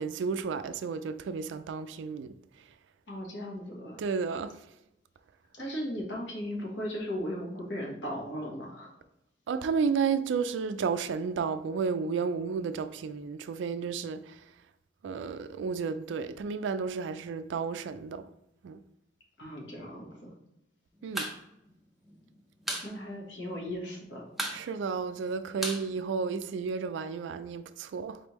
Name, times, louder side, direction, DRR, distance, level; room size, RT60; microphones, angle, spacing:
voice 1, 0.0-2.3 4.0-4.6 9.5-14.4 15.0-18.3 18.6-18.8 21.0-21.3 24.5-28.2, right 5 dB, 75° right, 0.3 m, -32 dB
voice 2, 3.1-4.0 5.5-8.9 19.4-20.3 22.8-24.3, equal, 70° left, 1.3 m, -37 dB
sound 1, 21.0-21.4 21.6-21.7 22.0-22.9 23.2-23.3 23.6-24.0 24.3-26.7, right 1 dB, ahead, 0.5 m, -36 dB
4.3 x 3.3 x 3.1 m
head